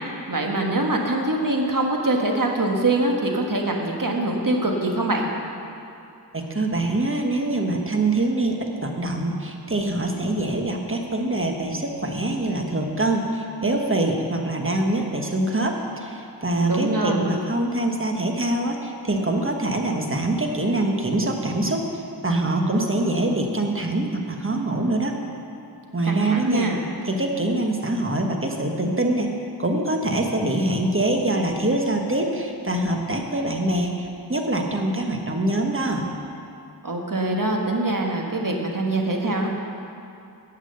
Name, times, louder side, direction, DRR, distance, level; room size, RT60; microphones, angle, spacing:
voice 1, 0.3-5.3 16.6-17.2 26.0-26.8 36.8-39.5, right 2 dB, 55° right, 1 dB, 1.5 m, -23 dB
voice 2, 6.3-8.6 8.8-25.1 25.9-26.7 27.0-29.3 29.6-36.1, right 2 dB, 30° right, 2 dB, 1.3 m, -24 dB
10.0 x 7.5 x 6.8 m, 2.6 s
wide cardioid pair, 45°, 40 cm